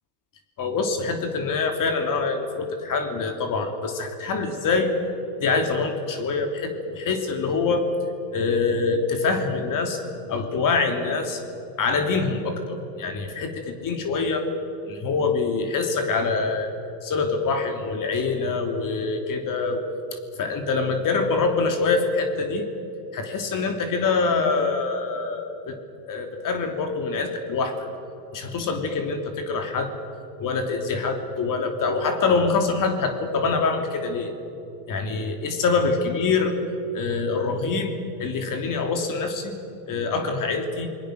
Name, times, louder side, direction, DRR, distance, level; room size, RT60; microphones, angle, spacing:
voice 1, 0.6-4.9 5.4-7.9 8.3-10.0 10.3-11.4 11.8-14.5 14.8-16.7 17.0-19.8 20.1-22.6 23.1-25.8 26.1-27.9 28.3-29.9 30.4-34.3 34.9-36.6 36.9-37.9 38.2-39.5 39.9-40.9, left 4 dB, 40° left, 6 dB, 3.2 m, -25 dB
28.0 x 20.5 x 6.5 m, 2.9 s
hypercardioid pair, 95°, 47 cm